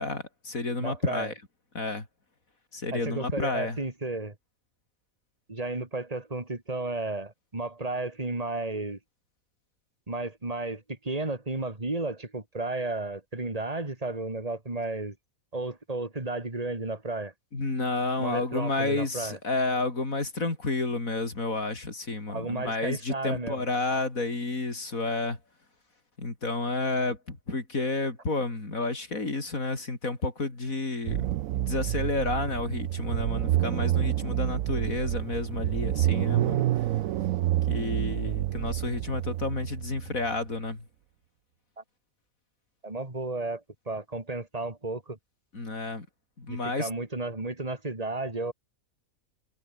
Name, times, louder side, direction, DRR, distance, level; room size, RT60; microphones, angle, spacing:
voice 1, 0.0-1.3 1.7-2.1 2.7-3.8 17.5-25.4 26.2-36.7 37.7-40.8 45.5-46.1 46.4-46.9, left 3 dB, 70° left, 4.7 m, -30 dB
voice 2, 0.8-1.3 2.9-4.3 5.5-9.0 10.1-15.1 15.5-17.3 18.2-19.4 22.3-23.7 41.8-41.9 42.8-45.2 46.5-48.5, right 2 dB, 25° right, 3.3 m, -33 dB
sound 1, 31.1-40.5, right 14 dB, 75° right, 1.0 m, -28 dB
omnidirectional pair, 1.5 m